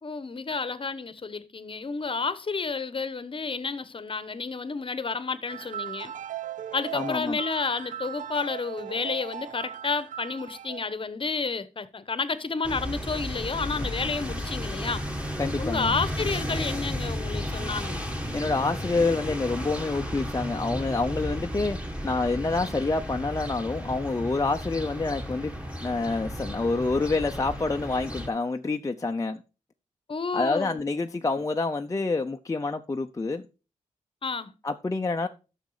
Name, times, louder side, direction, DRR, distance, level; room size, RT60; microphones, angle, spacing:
voice 1, 0.0-6.1 6.7-15.0 15.6-18.1 30.1-30.8 34.2-34.5, left 4 dB, 40° left, 1.0 m, -31 dB
sound 1, 5.5-10.9, right 10 dB, 80° right, 0.4 m, -38 dB
voice 2, 6.9-7.4 15.4-15.9 18.3-21.8 22.0-25.5 25.8-29.4 30.3-33.4 34.6-35.3, left 3 dB, 25° left, 0.6 m, -27 dB
sound 2, 12.6-28.3, equal, 10° right, 2.0 m, -33 dB
10.5 x 6.5 x 4.8 m
cardioid pair, 75°, 13 cm